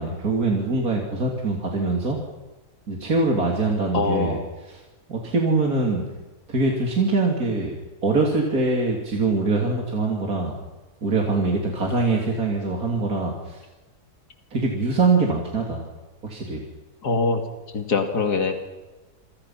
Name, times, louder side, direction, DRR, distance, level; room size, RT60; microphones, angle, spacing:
voice 1, 0.0-2.2 2.9-4.4 5.1-6.0 6.5-10.5 11.0-13.6 14.5-15.8 16.2-16.6, right 3 dB, 65° right, -1 dB, 3.7 m, -23 dB
voice 2, 3.9-4.5 17.0-17.4 17.7-18.6, left 4 dB, 80° left, 5 dB, 2.9 m, -23 dB
27.5 x 26.0 x 5.9 m, 1.2 s
omnidirectional pair, 1.7 m